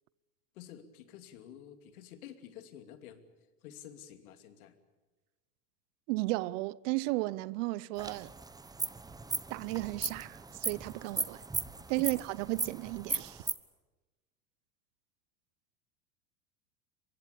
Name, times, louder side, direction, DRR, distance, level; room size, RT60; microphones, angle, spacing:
voice 1, 0.5-3.2 3.6-4.7 12.0-12.1, left 10 dB, 65° left, 2.8 m, -50 dB
voice 2, 6.1-8.3 9.5-11.4 11.9-13.4, right 21 dB, 55° right, 0.7 m, -34 dB
sound 1, 8.0-13.5, right 3 dB, 10° right, 1.0 m, -37 dB
24.0 x 23.0 x 8.6 m
hypercardioid pair, 100°, 46 cm